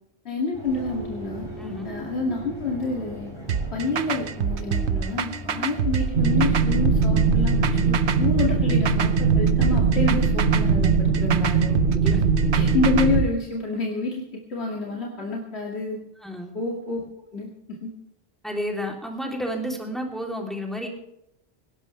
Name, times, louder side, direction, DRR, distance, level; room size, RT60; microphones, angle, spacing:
voice 1, 0.2-1.5 1.8-3.3 3.7-11.8 12.5-16.0 16.5-17.0 17.3-17.9, left 3 dB, 70° left, -3 dB, 2.8 m, -28 dB
sound 1, 0.5-10.0, right 1 dB, 25° left, 5.1 m, -39 dB
sound 2, 3.5-13.3, right 7 dB, 80° right, 1.2 m, -26 dB
sound 3, 6.1-13.2, right 5 dB, 50° right, 1.5 m, -21 dB
voice 2, 16.2-16.5 18.4-20.9, equal, ahead, 1 dB, 3.3 m, -31 dB
20.0 x 17.5 x 3.4 m, 0.79 s
omnidirectional pair, 1.1 m